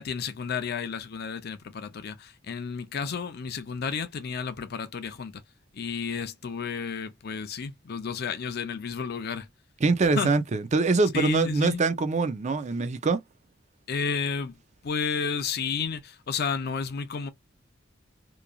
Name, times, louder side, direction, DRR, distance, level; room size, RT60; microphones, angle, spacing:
voice 1, 0.0-5.4 5.7-9.5 10.0-10.3 11.1-11.8 13.9-14.6 14.8-17.3, left 6 dB, 55° left, 0.4 m, -32 dB
voice 2, 9.8-13.2, right 3 dB, 35° right, 0.4 m, -24 dB
3.0 x 2.4 x 2.2 m
head